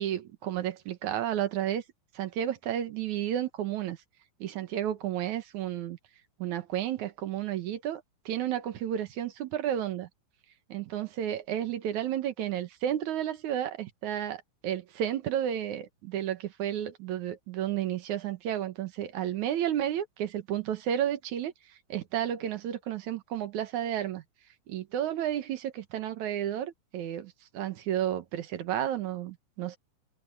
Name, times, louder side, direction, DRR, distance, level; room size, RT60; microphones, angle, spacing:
voice 1, 0.0-1.8 2.1-4.0 4.4-6.0 6.4-10.1 10.7-21.5 21.9-24.2 24.7-29.8, right 11 dB, 65° right, 2.3 m, -32 dB
omnidirectional pair, 4.2 m